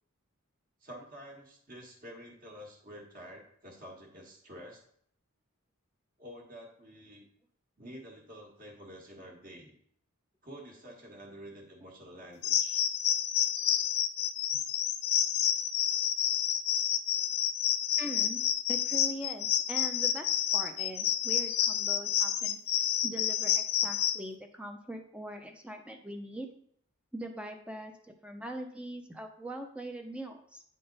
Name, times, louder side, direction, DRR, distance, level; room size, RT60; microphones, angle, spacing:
voice 1, 0.8-4.8 6.2-7.2 7.8-9.8 10.4-12.8, equal, 40° right, 0 dB, 1.5 m, -49 dB
sound 1, 12.4-24.2, left 10 dB, 90° left, 0.5 m, -29 dB
voice 2, 18.0-18.4 18.7-20.3 20.5-22.6 23.0-26.5 27.1-30.6, right 1 dB, 5° right, 4 dB, 0.6 m, -41 dB
8.6 x 3.8 x 4.0 m, 0.66 s
head